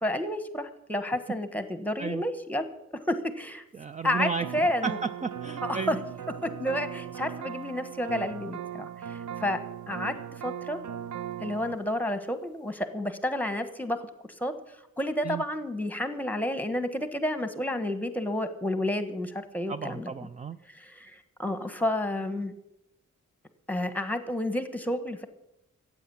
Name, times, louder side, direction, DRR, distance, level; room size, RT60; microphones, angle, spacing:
voice 1, 0.0-3.6 4.0-5.0 5.6-6.0 6.4-9.6 9.9-10.8 11.4-14.1 14.4-14.5 15.0-20.1 20.7-22.5 23.7-25.3, left 1 dB, 5° left, 10 dB, 1.2 m, -30 dB
voice 2, 3.7-6.0 15.2-15.4 19.7-20.6, right 5 dB, 25° right, 12 dB, 0.4 m, -34 dB
sound 1, 4.4-11.8, right 9 dB, 80° right, 0.7 m, -38 dB
15.0 x 8.7 x 8.5 m, 0.88 s
wide cardioid pair, 145°, 30 cm